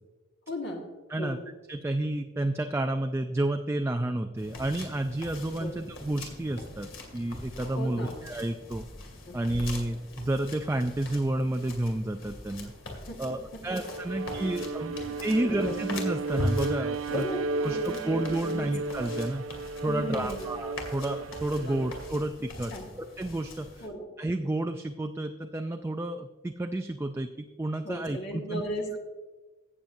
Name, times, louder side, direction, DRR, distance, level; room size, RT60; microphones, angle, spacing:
voice 1, 0.5-0.8 1.2-1.5 5.6-5.7 7.7-8.2 9.3-9.4 13.1-13.4 14.4-15.8 17.1-18.7 19.8-20.5 21.6-21.8 22.7-22.9 23.8-24.1 27.8-29.0, equal, 55° left, -1 dB, 1.6 m, -37 dB
voice 2, 1.7-8.9 9.3-12.7 13.2-15.0 15.2-17.2 17.6-19.4 19.8-22.7 23.2-23.8 24.2-27.3 27.6-28.6, right 1 dB, 15° right, 6 dB, 0.3 m, -30 dB
sound 1, 4.4-23.9, left 1 dB, 75° left, 2.3 m, -41 dB
Bowed string instrument, 13.8-22.2, right 3 dB, 80° right, 0.4 m, -34 dB
16.0 x 7.4 x 2.6 m, 1.3 s
head